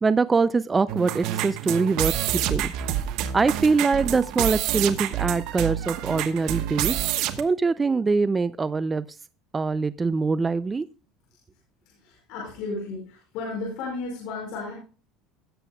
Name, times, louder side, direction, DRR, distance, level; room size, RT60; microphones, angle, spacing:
voice 1, 0.0-2.7 3.3-6.9 7.4-9.0 9.5-10.9, right 4 dB, 20° right, 15 dB, 0.4 m, -23 dB
sound 1, 0.9-7.4, right 12 dB, 65° right, 1.1 m, -28 dB
voice 2, 12.0-14.7, left 3 dB, 65° left, -2 dB, 5.0 m, -33 dB
17.5 x 7.5 x 2.3 m, 0.37 s
supercardioid pair, 125°, 0 cm